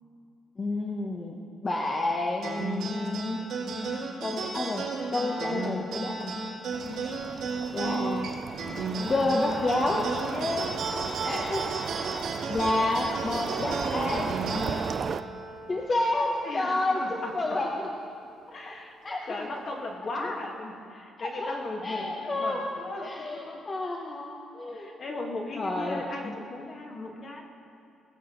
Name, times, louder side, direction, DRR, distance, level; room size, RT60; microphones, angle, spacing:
voice 1, 0.6-1.4 1.6-3.4 4.2-6.4 7.7-8.3 9.1-10.1 11.2-14.4 15.7-17.9 19.0-19.5 20.2-20.3 21.2-21.5 21.8-22.6 23.0-24.9 25.5-26.3, left 2 dB, 35° left, -1 dB, 1.1 m, -30 dB
sound 1, 2.4-17.2, right 3 dB, 90° right, 3.1 m, -34 dB
sound 2, 6.7-15.2, right 6 dB, 50° right, 0.4 m, -35 dB
voice 2, 10.3-10.9 16.4-17.3 18.5-19.0 19.3-23.7 24.7-27.4, left 2 dB, 50° left, 0 dB, 1.8 m, -37 dB
19.0 x 7.5 x 4.0 m, 2.7 s
cardioid pair, 90°, 0 cm